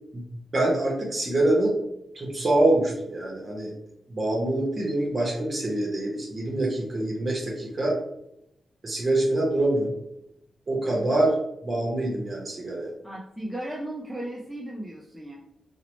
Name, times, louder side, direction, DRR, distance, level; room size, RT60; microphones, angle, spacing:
voice 1, 0.5-1.8 2.1-3.7 4.1-8.0 8.8-9.9 10.7-11.3 11.6-12.9, right 1 dB, 35° right, -2 dB, 0.8 m, -25 dB
voice 2, 13.0-15.4, right 1 dB, ahead, -4 dB, 0.5 m, -35 dB
2.8 x 2.0 x 2.9 m, 0.79 s
cardioid pair, 70°, 0 cm